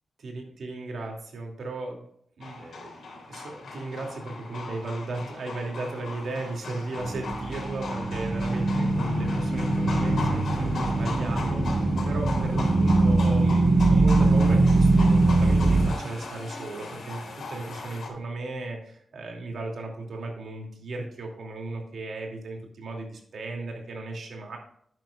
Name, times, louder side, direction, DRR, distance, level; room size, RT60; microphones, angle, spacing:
voice 1, 0.2-2.0 2.4-24.6, right 2 dB, 70° right, 1 dB, 2.7 m, -35 dB
sound 1, 2.4-18.1, left 3 dB, 75° left, 3.4 m, -38 dB
sound 2, 7.0-15.9, right 2 dB, 55° right, 1.6 m, -22 dB
11.0 x 9.3 x 2.5 m, 0.66 s
wide cardioid pair, 140°, 0 cm